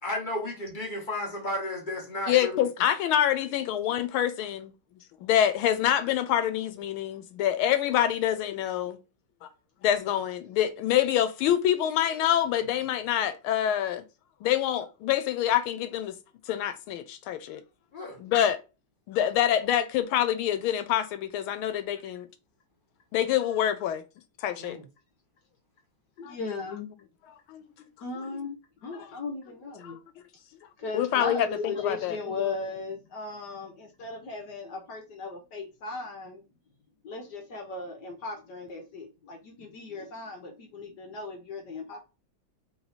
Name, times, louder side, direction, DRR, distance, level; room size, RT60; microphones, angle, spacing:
voice 1, 0.0-2.7 17.9-18.2 24.6-24.8, left 1 dB, 30° left, 1.0 m, -33 dB
voice 2, 2.3-4.7 5.2-9.0 9.4-9.5 9.8-14.0 14.4-16.2 16.5-17.6 18.2-18.6 19.1-22.3 23.1-24.0 24.4-24.8 26.2-26.4 27.5-27.9 28.3-28.5 28.9-29.1 29.8-30.0 30.9-32.2, left 11 dB, 90° left, 1.5 m, -26 dB
voice 3, 26.2-26.9 28.0-30.0 30.8-36.4 37.0-42.0, left 3 dB, 65° left, 1.2 m, -37 dB
3.3 x 3.1 x 4.0 m
omnidirectional pair, 2.3 m